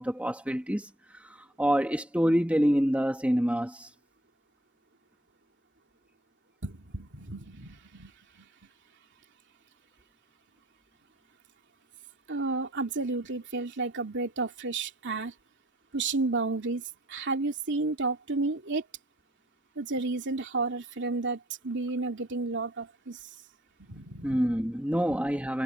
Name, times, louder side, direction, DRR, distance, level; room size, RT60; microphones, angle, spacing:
voice 1, 0.0-3.9 24.2-25.6, equal, 5° right, 1.5 m, -27 dB
voice 2, 6.6-8.5 12.3-15.3 15.9-16.8 17.1-18.8 19.8-23.2 23.8-24.4, right 3 dB, 55° right, 3.0 m, -32 dB
head